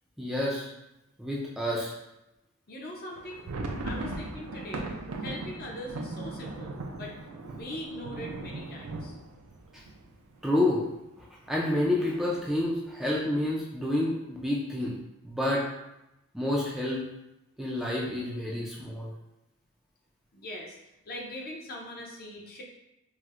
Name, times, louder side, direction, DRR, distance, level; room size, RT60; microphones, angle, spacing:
voice 1, 0.2-0.7 1.2-1.9 10.4-10.8 11.5-14.9 15.2-15.7 16.3-17.0 17.6-19.1, left 1 dB, ahead, -5 dB, 0.3 m, -28 dB
voice 2, 2.7-3.4 3.8-4.9 5.2-7.1 7.4-9.2 20.3-20.8 21.1-22.6, left 1 dB, 45° left, -1 dB, 0.6 m, -41 dB
sound 1, 3.1-10.8 11.2-11.3 11.5-11.8 12.3-12.8, right 2 dB, 75° right, 0.4 m, -38 dB
4.3 x 2.0 x 2.4 m, 0.91 s
head